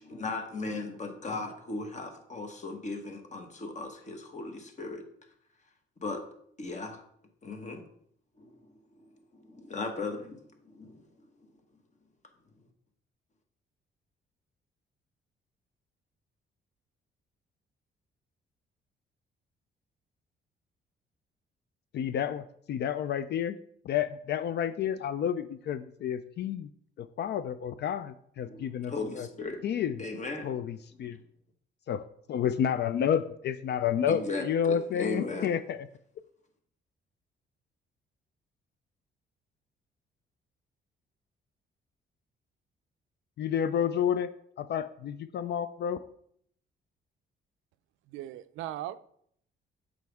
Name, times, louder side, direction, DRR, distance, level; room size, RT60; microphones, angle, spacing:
voice 1, 0.0-5.0 6.0-6.2 6.6-7.0 7.4-7.8 8.4-11.5 28.4-29.6 30.0-30.5 34.1-35.5, left 3 dB, 35° left, 1.3 m, -37 dB
voice 2, 21.9-23.6 23.8-26.7 27.0-29.3 29.6-30.0 30.4-31.2 31.9-35.9 43.4-46.0, left 8 dB, 60° left, 0.4 m, -30 dB
voice 3, 48.1-49.0, right 13 dB, 90° right, 0.4 m, -38 dB
7.6 x 5.2 x 3.5 m
cardioid pair, 90°, 20 cm